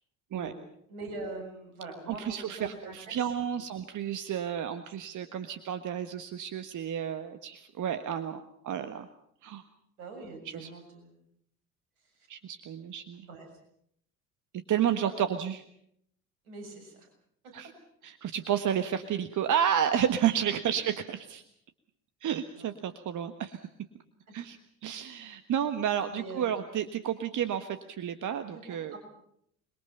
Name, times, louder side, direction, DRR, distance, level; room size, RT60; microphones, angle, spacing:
voice 1, 0.9-3.6 10.0-11.2 12.1-12.3 13.1-13.5 14.8-15.2 16.4-17.1 17.4-17.5 22.5-22.7 26.1-26.6 28.5-29.0, right 2 dB, 70° right, 4 dB, 7.1 m, -43 dB
voice 2, 2.1-9.1 9.4-9.6 10.5-10.7 12.3-13.3 14.7-15.6 17.5-17.7 18.0-21.4 22.2-23.6 24.3-28.9, right 9 dB, 40° right, 9 dB, 1.5 m, -31 dB
27.5 x 22.0 x 5.7 m, 0.70 s
figure-of-eight pair, 60°, 45 cm